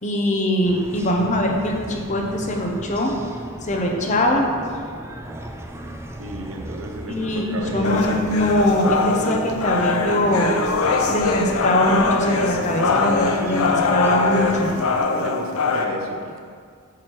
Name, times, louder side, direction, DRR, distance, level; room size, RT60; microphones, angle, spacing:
voice 1, 0.0-3.1 3.6-4.5 7.1-10.6 10.8-14.7, left 1 dB, 35° left, 1 dB, 0.8 m, -22 dB
sound 1, 0.6-15.0, right 1 dB, 10° right, 0.4 m, -37 dB
voice 2, 6.2-8.3 13.2-16.4, right 2 dB, 65° right, 2 dB, 0.8 m, -35 dB
sound 2, 7.8-15.8, left 4 dB, 85° left, 0.6 m, -22 dB
8.5 x 3.2 x 6.1 m, 2.1 s
head